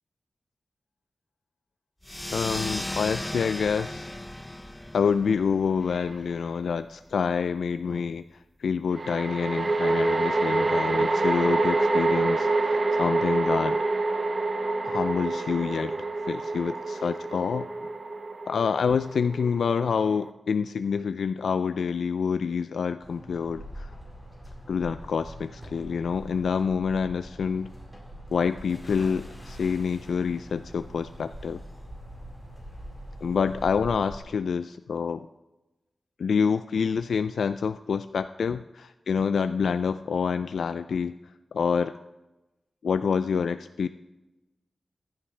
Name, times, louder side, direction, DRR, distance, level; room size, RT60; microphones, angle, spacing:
sound 1, 2.0-7.1, left 1 dB, 10° left, 0.6 m, -36 dB
voice 1, 2.3-4.1 4.9-8.3 8.6-13.8 14.8-16.0 16.3-17.9 18.5-23.9 24.7-27.7 28.3-31.6 33.2-35.3 36.2-41.1 41.5-42.0 42.8-43.9, left 6 dB, 85° left, 11 dB, 0.3 m, -27 dB
sound 2, 5.9-6.1 8.9-20.3, right 3 dB, 45° right, 0.9 m, -27 dB
sound 3, 23.0-34.2, right 1 dB, 5° right, 4.6 m, -43 dB
15.5 x 11.5 x 3.3 m, 1.0 s
cardioid pair, 75°, 0 cm